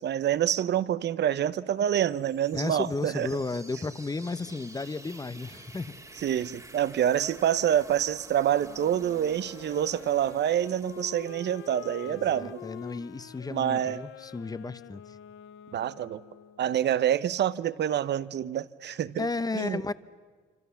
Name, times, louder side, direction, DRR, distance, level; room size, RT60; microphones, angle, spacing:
voice 1, 0.0-3.3 6.2-12.6 13.5-14.0 15.7-16.2 16.6-19.3 19.5-19.8, right 10 dB, 60° right, 0.8 m, -27 dB
sound 1, 1.9-13.6, right 2 dB, 15° right, 1.9 m, -51 dB
voice 2, 2.5-5.9 12.1-15.2 19.2-19.9, left 3 dB, 20° left, 0.9 m, -33 dB
Wind instrument woodwind instrument, 8.4-16.7, left 11 dB, 80° left, 0.7 m, -46 dB
26.5 x 26.0 x 7.1 m
cardioid pair, 90°, 20 cm